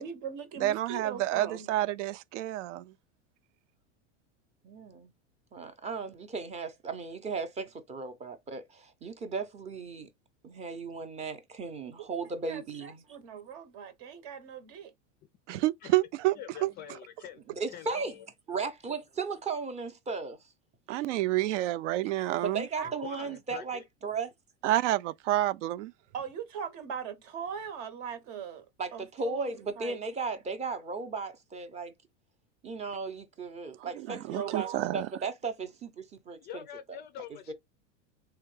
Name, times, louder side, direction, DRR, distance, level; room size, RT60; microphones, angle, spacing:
voice 1, 0.0-1.7 11.8-14.9 22.8-23.3 26.1-28.6 28.9-30.0 34.1-35.0, right 7 dB, 55° right, 1.0 m, -41 dB
voice 2, 0.6-2.8 15.5-16.3 16.6-16.7 20.9-22.6 24.6-25.9 34.1-35.1, right 15 dB, 75° right, 0.5 m, -29 dB
voice 3, 4.6-5.1 5.5-10.1 10.4-13.0 17.5-18.1 18.5-20.4 22.4-24.3 28.8-31.9 32.6-34.7 34.9-36.6 37.5-37.6, right 4 dB, 20° right, 0.6 m, -36 dB
voice 4, 16.3-17.4 17.7-18.3 22.8-23.9 36.4-37.5, left 9 dB, 30° left, 0.4 m, -45 dB
3.3 x 2.2 x 3.1 m
supercardioid pair, 130°, 36 cm